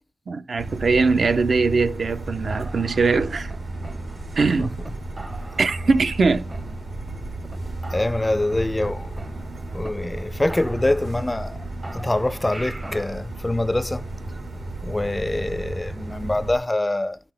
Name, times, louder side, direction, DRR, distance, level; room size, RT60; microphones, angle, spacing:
voice 1, 0.3-3.5 4.4-4.7 5.6-6.5, right 4 dB, 70° right, 0.5 m, -21 dB
sound 1, 0.6-16.6, right 2 dB, 85° right, 2.1 m, -33 dB
sound 2, 2.5-4.4 4.8-4.9 5.2-6.2 6.5-7.2 7.5-7.6 7.8-9.9 10.2-10.3 10.5-11.5 11.8-13.2, right 2 dB, 30° right, 0.6 m, -42 dB
voice 2, 7.9-9.1 9.7-11.6 11.9-14.0 14.8-17.2, left 1 dB, 20° left, 0.3 m, -25 dB
11.0 x 5.8 x 3.3 m
wide cardioid pair, 80°, 0 cm